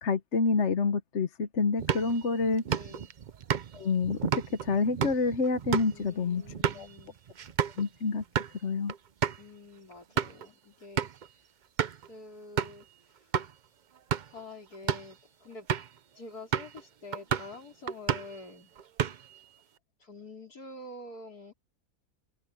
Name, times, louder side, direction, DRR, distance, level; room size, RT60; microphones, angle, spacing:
voice 1, 0.0-2.6 3.7-6.4 6.8-6.9 7.8-8.2 8.6-8.9, left 4 dB, 50° left, 1.3 m, -28 dB
sound 1, 1.8-7.8 8.2-8.5 8.9-9.0 9.2-9.4 9.9-10.5 11.0-11.3 11.8-12.1 12.6-12.8 13.3-13.5 14.0-14.4 14.7-15.1 15.7-16.0 16.5-16.8 17.1-17.6 17.9-18.4 18.8-19.4, right 8 dB, 80° right, 0.4 m, -31 dB
voice 2, 2.7-3.1 5.9-7.2 9.4-11.1 12.0-13.3 14.3-15.7 16.1-18.8 20.0-21.5, left 2 dB, 70° left, 5.1 m, -47 dB
omnidirectional pair, 1.7 m